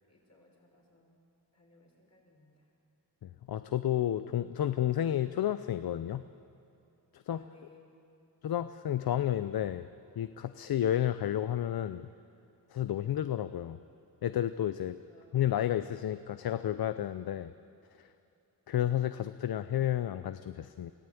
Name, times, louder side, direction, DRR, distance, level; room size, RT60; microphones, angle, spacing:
voice 1, 0.1-1.2 1.5-2.7 7.3-8.0 14.8-15.4, left 3 dB, 40° left, -1 dB, 6.3 m, -62 dB
voice 2, 3.2-6.2 7.3-7.4 8.4-9.9 10.2-12.1 12.7-13.8 14.2-15.0 15.3-17.5 18.7-20.9, left 11 dB, 65° left, 12 dB, 0.7 m, -31 dB
23.5 x 16.5 x 9.2 m, 2.8 s
cardioid pair, 90°, 40 cm